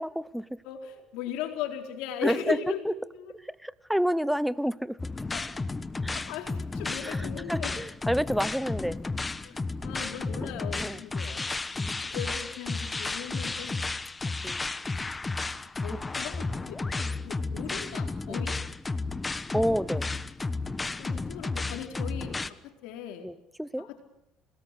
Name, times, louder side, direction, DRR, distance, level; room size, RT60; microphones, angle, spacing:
voice 1, 0.0-0.6 2.2-2.6 2.8-2.9 3.3-5.0 6.0-6.2 7.0-9.0 10.4-10.5 10.8-11.0 11.7-12.0 14.4-14.6 18.3-18.4 19.5-20.1 23.2-23.9, equal, ahead, 0.9 m, -29 dB
voice 2, 0.6-3.3 5.3-5.5 6.1-7.7 9.4-11.5 12.0-13.8 15.8-18.6 21.0-23.3 23.8-24.0, left 9 dB, 80° left, 4.3 m, -38 dB
sound 1, 5.0-22.5, left 3 dB, 20° left, 1.2 m, -33 dB
27.5 x 19.5 x 8.5 m
supercardioid pair, 95°, 0 cm